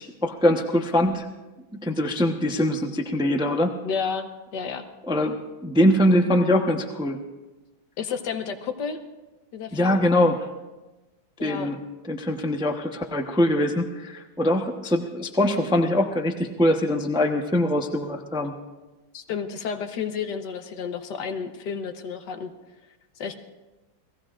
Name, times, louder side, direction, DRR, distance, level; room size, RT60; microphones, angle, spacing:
voice 1, 0.2-1.3 1.8-3.8 5.1-5.4 5.6-7.2 9.7-10.4 11.4-11.8 12.1-18.5, left 1 dB, 5° right, 3 dB, 0.4 m, -22 dB
voice 2, 3.8-4.9 8.0-9.0 9.5-10.0 11.4-11.7 19.1-22.5 23.2-23.4, left 6 dB, 60° left, 7 dB, 1.6 m, -31 dB
29.0 x 18.5 x 2.5 m, 1.1 s
omnidirectional pair, 2.2 m